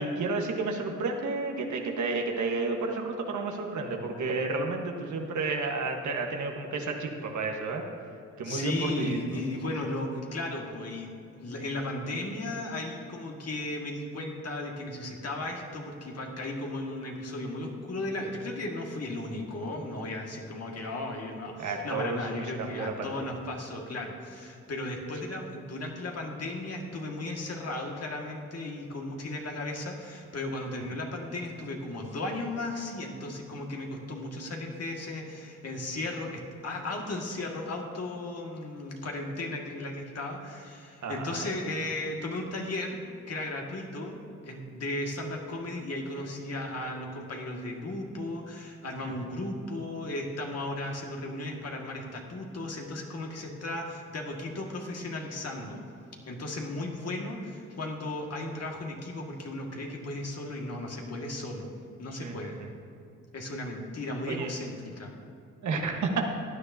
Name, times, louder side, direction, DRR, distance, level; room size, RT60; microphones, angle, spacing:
voice 1, 0.0-7.8 8.4-9.2 21.6-23.1 41.0-41.5 62.2-62.5 64.3-64.5 65.6-66.3, right 3 dB, 70° right, 2 dB, 1.3 m, -31 dB
voice 2, 8.4-43.0 43.3-44.2 44.4-55.8 56.3-61.7 62.0-62.6 63.3-65.1, left 2 dB, 55° left, 0 dB, 1.9 m, -35 dB
15.5 x 10.0 x 2.7 m, 2.5 s
supercardioid pair, 55°, 31 cm